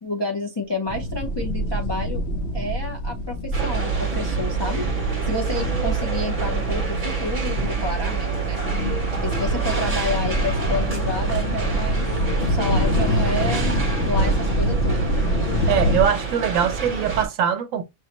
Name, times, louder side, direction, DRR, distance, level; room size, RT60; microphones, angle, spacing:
voice 1, 0.0-2.2 2.5-4.9 5.2-8.6 9.2-12.1 12.4-15.2, left 2 dB, 35° left, 0.4 m, -30 dB
sound 1, 0.9-16.1, equal, 60° left, 0.8 m, -25 dB
sound 2, 3.5-17.3, right 5 dB, 30° right, 0.7 m, -27 dB
voice 2, 15.7-17.8, right 8 dB, 70° right, 1.0 m, -22 dB
6.1 x 2.1 x 2.9 m
omnidirectional pair, 1.5 m